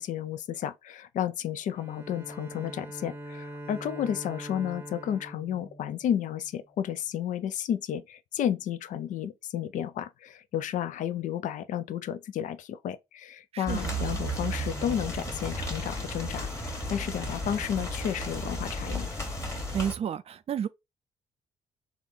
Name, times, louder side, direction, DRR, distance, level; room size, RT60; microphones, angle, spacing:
voice 1, 0.0-19.1, left 10 dB, 50° left, 0.4 m, -32 dB
Bowed string instrument, 1.7-6.5, right 1 dB, 15° right, 0.8 m, -43 dB
voice 2, 13.5-14.0 19.7-20.7, right 8 dB, 40° right, 0.4 m, -31 dB
sound 1, 13.7-20.0, equal, 20° left, 1.4 m, -34 dB
3.4 x 2.3 x 4.0 m
figure-of-eight pair, 45°, 16 cm